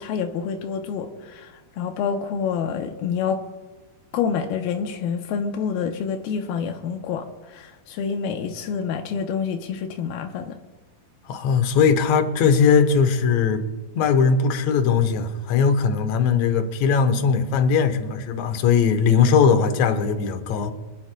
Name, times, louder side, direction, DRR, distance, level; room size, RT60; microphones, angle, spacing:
voice 1, 0.0-3.4 4.1-10.6, left 6 dB, 85° left, 2.6 m, -27 dB
voice 2, 11.3-13.6 14.0-20.7, left 6 dB, 65° left, 1.8 m, -19 dB
25.5 x 10.5 x 2.2 m
omnidirectional pair, 4.2 m